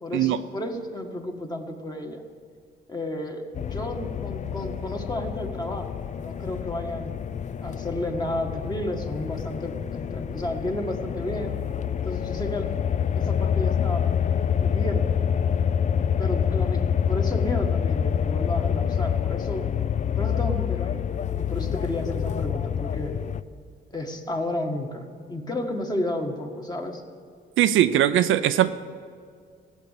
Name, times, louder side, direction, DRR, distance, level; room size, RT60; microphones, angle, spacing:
voice 1, 0.0-2.2 2.9-7.2 7.6-11.6 12.0-12.7 13.2-14.1 14.6-15.2 16.2-19.7 20.2-23.1 23.9-27.0, left 1 dB, 20° left, 3 dB, 1.7 m, -32 dB
sound 1, 3.5-23.4, left 8 dB, 40° left, 0.4 m, -27 dB
voice 2, 27.6-28.7, right 12 dB, 80° right, 11 dB, 0.6 m, -20 dB
16.5 x 7.3 x 8.3 m, 2.1 s
cardioid pair, 90°, 20 cm